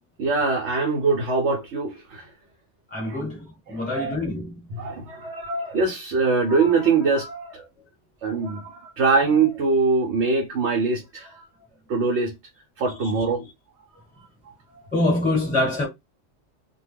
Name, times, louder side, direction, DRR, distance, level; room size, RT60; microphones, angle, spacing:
voice 1, 0.2-2.3 3.0-3.2 3.7-4.2 4.7-7.7 8.2-11.4 11.9-12.3 12.8-13.4, right 4 dB, 65° right, 0.9 m, -23 dB
voice 2, 2.9-4.6 13.0-13.1 13.4-13.5 14.9-15.9, left 2 dB, 5° left, 1.2 m, -25 dB
2.2 x 2.2 x 3.3 m
omnidirectional pair, 1.3 m